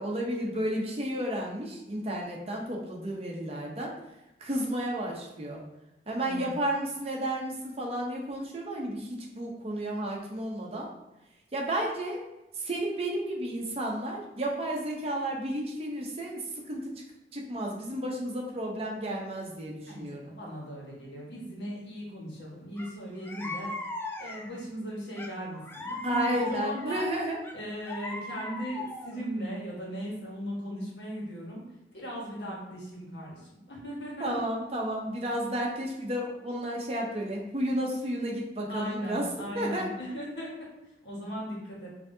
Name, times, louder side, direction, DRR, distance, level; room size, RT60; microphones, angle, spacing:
voice 1, 0.0-3.9 4.4-5.6 6.1-10.9 11.5-12.2 12.5-17.0 17.3-20.3 26.0-27.4 34.2-39.3 39.5-39.9, right 1 dB, 35° right, -1 dB, 0.7 m, -32 dB
voice 2, 6.2-6.6 19.9-23.7 24.2-27.1 27.5-31.6 31.9-34.3 38.7-40.5 41.0-41.9, equal, 80° left, -4 dB, 1.4 m, -38 dB
sound 1, 22.8-22.9 23.2-24.6 25.2-26.9 27.4-29.2, left 2 dB, 10° left, 0.3 m, -38 dB
5.7 x 2.7 x 2.7 m, 0.92 s
head